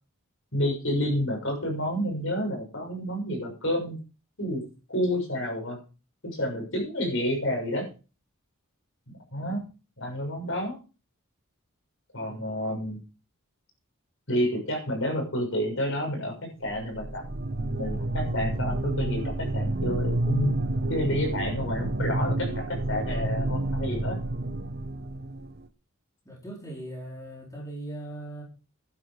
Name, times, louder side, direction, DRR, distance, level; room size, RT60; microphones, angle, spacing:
voice 1, 0.5-4.0 4.4-4.6 4.9-5.8 6.2-7.8 9.3-9.6 10.0-10.8 12.1-13.0 14.3-17.2 17.6-20.5 20.9-24.2, equal, 60° left, 3 dB, 6.6 m, -29 dB
voice 2, 12.2-12.5 26.2-28.4, right 1 dB, 15° left, -2 dB, 4.5 m, -39 dB
sound 1, 16.6-25.6, right 2 dB, 45° right, 1.1 m, -29 dB
12.0 x 11.0 x 5.1 m, 0.34 s
head